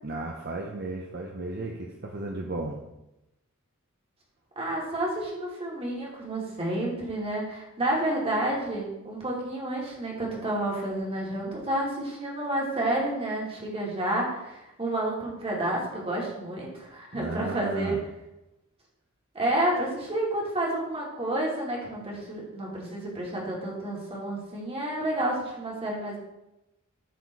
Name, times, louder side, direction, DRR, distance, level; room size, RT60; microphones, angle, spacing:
voice 1, 0.0-2.8 17.1-18.0, right 2 dB, 50° right, 1 dB, 0.9 m, -34 dB
voice 2, 4.6-18.0 19.3-26.2, right 1 dB, 30° right, -3 dB, 2.6 m, -30 dB
12.5 x 4.4 x 4.7 m, 0.92 s
head